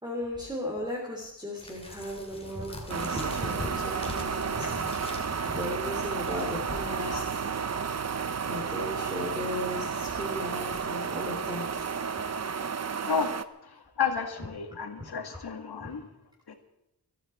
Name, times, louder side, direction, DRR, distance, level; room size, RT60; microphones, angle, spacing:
voice 1, 0.0-4.9 5.5-7.4 8.4-11.9 15.0-15.1 15.8-15.9, left 1 dB, 10° right, -3 dB, 3.2 m, -36 dB
sound 1, 1.6-6.9, left 1 dB, 15° left, 2.6 m, -42 dB
sound 2, 2.9-13.4, right 6 dB, 40° right, 0.8 m, -32 dB
voice 2, 13.6-16.1 16.5-16.6, left 6 dB, 70° left, 5 dB, 2.2 m, -32 dB
21.5 x 13.5 x 4.5 m, 0.89 s
wide cardioid pair, 160°, 40 cm